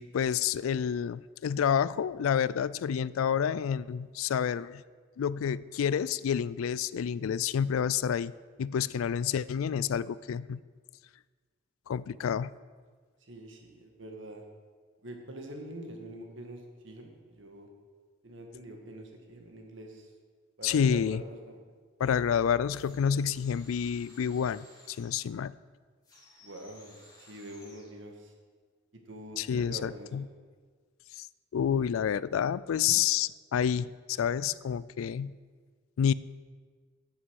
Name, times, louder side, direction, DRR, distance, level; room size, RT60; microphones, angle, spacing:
voice 1, 0.0-4.8 5.2-8.3 8.6-10.6 11.9-12.5 20.6-21.2 22.0-25.5 29.4-30.2 31.1-31.3 31.5-35.3 36.0-36.1, left 8 dB, 90° left, 19 dB, 0.3 m, -29 dB
voice 2, 13.2-14.4 15.0-17.7 18.2-20.1 20.6-21.6 26.4-28.3 29.0-30.3, right 1 dB, 65° right, 3 dB, 1.8 m, -45 dB
sound 1, 22.7-25.3 26.0-28.0, left 2 dB, 20° left, 2.8 m, -57 dB
9.7 x 8.5 x 6.4 m, 1.5 s
head